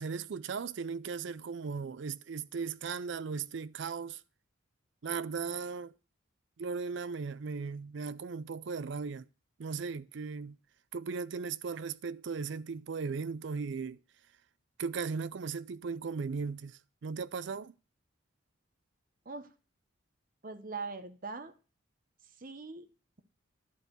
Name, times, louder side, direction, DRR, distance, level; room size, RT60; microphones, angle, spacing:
voice 1, 0.0-4.2 5.0-5.9 6.6-9.2 9.6-10.6 10.9-14.0 14.8-17.7, right 5 dB, 55° right, 0.4 m, -37 dB
voice 2, 20.4-21.5 22.2-23.2, right 4 dB, 40° right, 0.9 m, -42 dB
11.0 x 4.6 x 7.8 m
head